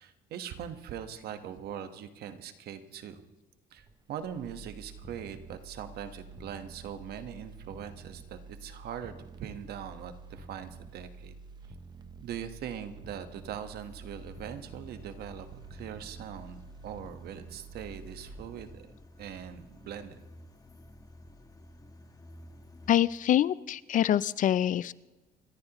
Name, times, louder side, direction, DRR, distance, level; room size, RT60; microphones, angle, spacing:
voice 1, 0.0-3.2 3.7-11.3 12.2-18.9 19.2-20.2, right 9 dB, 70° right, 8 dB, 1.3 m, -41 dB
sound 1, 3.8-19.9 20.2-20.3, right 4 dB, 25° right, 1.0 m, -49 dB
sound 2, 13.8-22.9, left 1 dB, 20° left, 1.3 m, -53 dB
voice 2, 22.9-24.9, left 11 dB, 50° left, 19 dB, 0.4 m, -25 dB
27.0 x 14.0 x 3.0 m, 1.1 s
cardioid pair, 110°, 17 cm